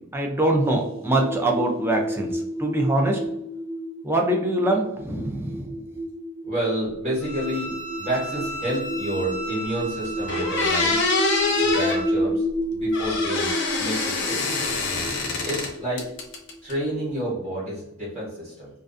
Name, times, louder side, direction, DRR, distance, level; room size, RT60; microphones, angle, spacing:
voice 1, 0.1-3.2 4.0-5.8, right 1 dB, 10° right, 0 dB, 0.3 m, -23 dB
sound 1, 0.6-16.9, equal, 65° right, 0.6 m, -31 dB
voice 2, 6.4-7.7 8.0-11.0 11.6-12.4 12.7-13.5 13.8-14.4 15.4-16.0 16.6-18.7, right 1 dB, 30° right, -8 dB, 1.0 m, -29 dB
Bowed string instrument, 7.2-12.1, right 2 dB, 85° left, 0.8 m, -35 dB
sound 2, 9.8-9.9 10.3-12.0 12.9-15.7 16.0-16.7, left 3 dB, 55° left, 0.5 m, -25 dB
2.4 x 2.3 x 2.4 m, 0.84 s
head